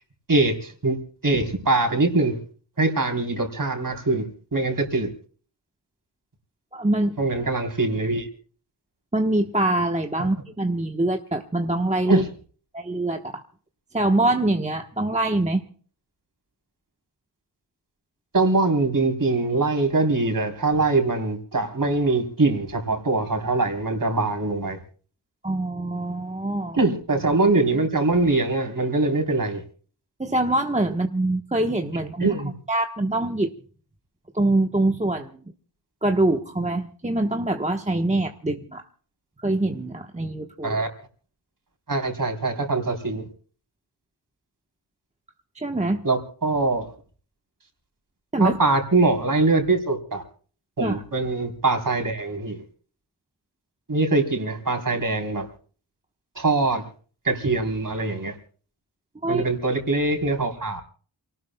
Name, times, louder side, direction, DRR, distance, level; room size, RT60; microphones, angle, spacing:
voice 1, 0.3-1.0 1.2-2.4 2.8-4.3 4.5-5.1 7.2-8.3 10.2-10.3 12.1-12.2 18.3-24.8 26.7-29.6 32.2-32.5 40.6-40.9 41.9-43.2 46.0-46.9 48.4-50.2 50.8-52.6 53.9-55.5 56.4-56.8 57.2-58.3 59.3-60.8, right 3 dB, 45° right, 4 dB, 3.6 m, -23 dB
voice 2, 6.7-7.2 9.1-12.2 12.7-13.4 13.9-15.6 25.4-26.8 30.2-32.3 32.7-33.5 34.3-35.3 36.0-38.8 39.4-40.8 45.6-46.1 48.3-48.6 50.8-51.0 59.2-59.4, right 2 dB, 15° right, 4 dB, 1.1 m, -24 dB
28.0 x 18.5 x 2.2 m, 0.43 s
wide cardioid pair, 85°, 45 cm